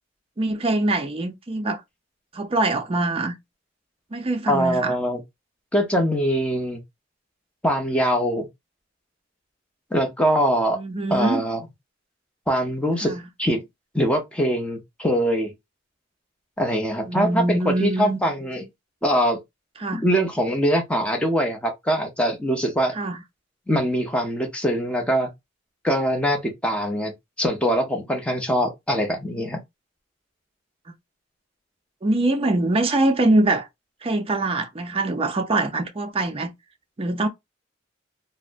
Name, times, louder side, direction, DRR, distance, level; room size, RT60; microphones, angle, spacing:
voice 1, 0.4-1.8 2.3-3.4 4.1-4.9 10.7-11.4 13.0-13.2 17.0-18.2 19.8-20.0 23.0-23.2 32.0-33.7 34.0-36.5 37.0-37.3, right 2 dB, 30° right, 0.5 m, -23 dB
voice 2, 4.5-5.2 5.7-6.8 7.6-8.5 9.9-10.8 11.1-11.6 12.5-13.6 13.9-15.5 16.6-18.7 19.0-19.4 19.9-22.9 23.7-25.3 25.8-27.1 27.4-29.6, equal, 5° left, 0.7 m, -23 dB
3.3 x 2.0 x 2.5 m
head